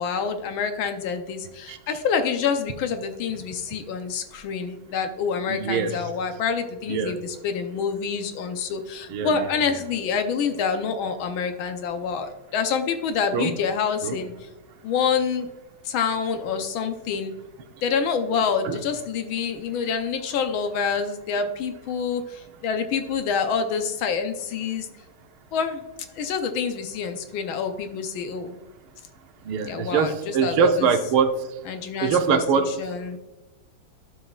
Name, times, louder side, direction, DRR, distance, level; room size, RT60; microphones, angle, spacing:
voice 1, 0.0-14.5 14.8-15.5 15.8-17.3 17.8-24.9 25.5-25.8 26.2-28.6 29.7-30.9 31.7-33.2, left 6 dB, 75° left, 7 dB, 1.5 m, -27 dB
voice 2, 5.5-6.0 6.9-7.1 9.1-9.5 13.3-13.5 14.0-14.2 18.6-18.8 29.4-31.4 32.0-32.7, right 5 dB, 80° right, 7 dB, 1.5 m, -22 dB
12.5 x 5.4 x 2.4 m, 1.0 s
omnidirectional pair, 2.3 m